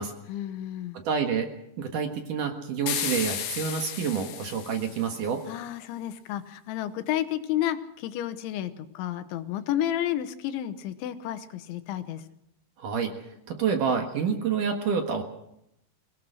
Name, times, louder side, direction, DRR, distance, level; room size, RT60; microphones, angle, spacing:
voice 1, 0.3-1.0 5.5-12.2, left 12 dB, 85° left, 11 dB, 3.5 m, -31 dB
voice 2, 0.9-1.5 1.8-5.4 12.8-13.1 13.5-15.2, right 6 dB, 60° right, 4 dB, 2.6 m, -28 dB
sound 1, 2.9-5.3, left 10 dB, 65° left, 3.2 m, -33 dB
23.5 x 18.0 x 6.4 m, 0.81 s
omnidirectional pair, 5.2 m